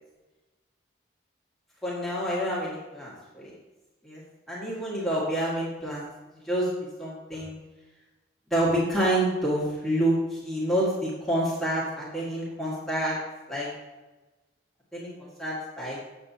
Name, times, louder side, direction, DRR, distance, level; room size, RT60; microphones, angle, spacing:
voice 1, 1.8-3.6 4.0-4.2 4.5-6.1 6.4-6.7 7.0-7.6 8.5-13.2 13.5-13.7 14.9-16.0, right 1 dB, ahead, -8 dB, 1.6 m, -28 dB
7.8 x 7.6 x 2.8 m, 1.2 s
head